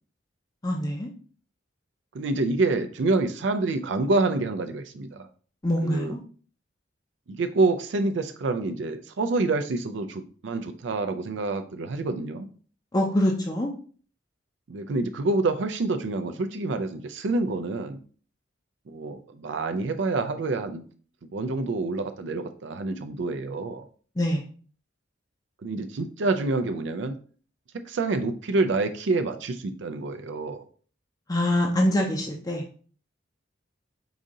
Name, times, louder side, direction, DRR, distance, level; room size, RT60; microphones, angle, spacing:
voice 1, 0.6-1.1 5.6-6.2 12.9-13.7 24.2-24.4 31.3-32.6, left 1 dB, 20° left, 1 dB, 0.5 m, -24 dB
voice 2, 2.1-5.3 5.8-6.2 7.3-12.5 14.7-18.0 18.9-20.9 21.2-23.9 25.6-27.1 27.8-30.6, right 3 dB, 70° right, 8 dB, 0.4 m, -27 dB
4.9 x 2.7 x 3.7 m, 0.42 s
head